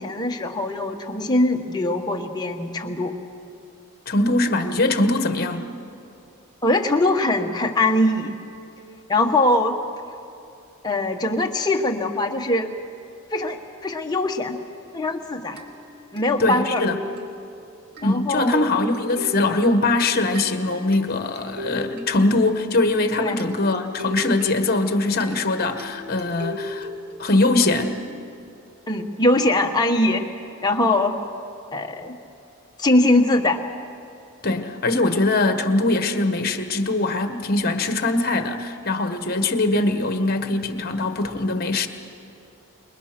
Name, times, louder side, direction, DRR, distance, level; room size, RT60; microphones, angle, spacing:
voice 1, 0.0-3.1 6.6-8.4 9.1-9.8 10.8-12.7 13.3-14.6 14.9-15.6 16.1-16.8 18.0-18.7 23.2-23.4 28.9-30.3 30.6-31.2 31.7-32.2 32.8-33.6, left 2 dB, 20° left, 2 dB, 1.3 m, -22 dB
voice 2, 4.1-5.6 16.4-17.0 18.0-26.9 27.2-28.0 34.4-41.9, left 2 dB, 45° left, 8 dB, 1.3 m, -22 dB
sound 1, 15.6-28.3, left 1 dB, 45° right, 2.4 m, -38 dB
27.5 x 22.0 x 6.0 m, 2.7 s
head